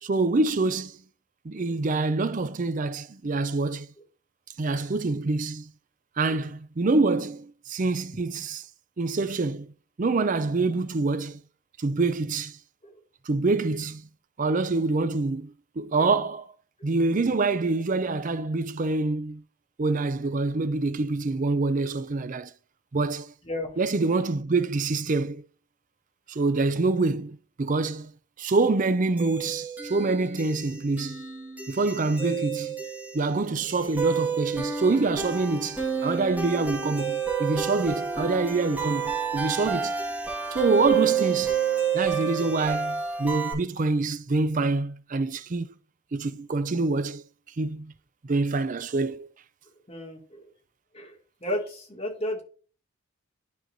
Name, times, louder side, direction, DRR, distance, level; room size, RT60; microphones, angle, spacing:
voice 1, 0.0-1.0 1.4-3.9 4.6-5.7 6.2-8.6 9.0-9.7 10.0-11.4 11.8-12.6 13.3-14.1 14.4-16.5 16.8-19.4 19.8-22.5 22.9-23.3 23.8-25.4 26.3-28.1 28.4-31.2 31.7-32.8 33.1-40.0 40.5-41.6 41.9-45.7 46.1-47.2 47.6-47.9 48.2-49.3, right 3 dB, 35° right, 0.4 m, -26 dB
voice 2, 23.4-23.8 49.9-50.5 50.9-52.4, left 1 dB, 25° left, 2.3 m, -34 dB
sound 1, 29.2-43.5, right 7 dB, 5° right, 1.7 m, -30 dB
11.5 x 4.4 x 2.7 m
head